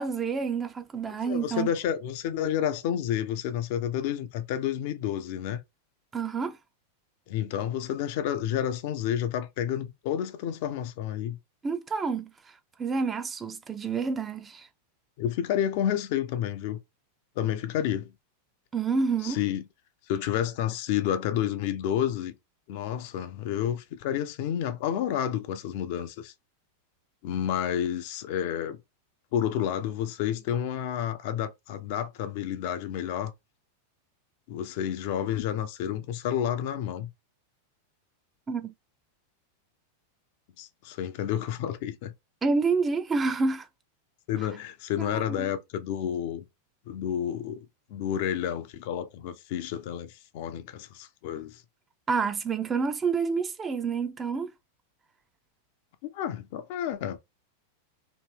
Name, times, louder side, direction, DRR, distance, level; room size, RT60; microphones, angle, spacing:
voice 1, 0.0-1.7 6.1-6.6 11.6-12.3 12.8-14.7 18.7-19.4 38.5-38.7 42.4-43.7 45.0-45.5 52.1-54.5, right 4 dB, 20° right, 0.4 m, -28 dB
voice 2, 1.1-5.6 7.3-11.4 15.2-16.8 17.4-18.1 19.2-19.6 20.1-22.3 22.7-26.3 27.2-28.8 29.3-33.3 34.5-37.1 40.6-42.1 44.3-46.4 46.9-51.6 56.0-57.2, left 10 dB, 50° left, 0.5 m, -30 dB
3.0 x 2.6 x 3.4 m
figure-of-eight pair, 90°, 0 cm